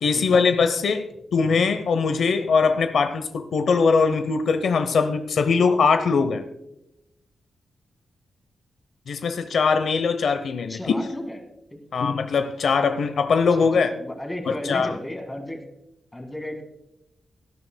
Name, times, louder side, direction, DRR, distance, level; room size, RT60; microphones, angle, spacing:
voice 1, 0.0-6.4 9.1-10.8 11.9-13.9 14.5-14.9, left 5 dB, 75° left, 9 dB, 0.7 m, -21 dB
voice 2, 10.7-11.4 11.7-11.8 13.6-15.6 16.1-16.6, left 1 dB, 10° left, 4 dB, 1.9 m, -34 dB
17.5 x 12.5 x 2.2 m, 0.90 s
wide cardioid pair, 135°, 0 cm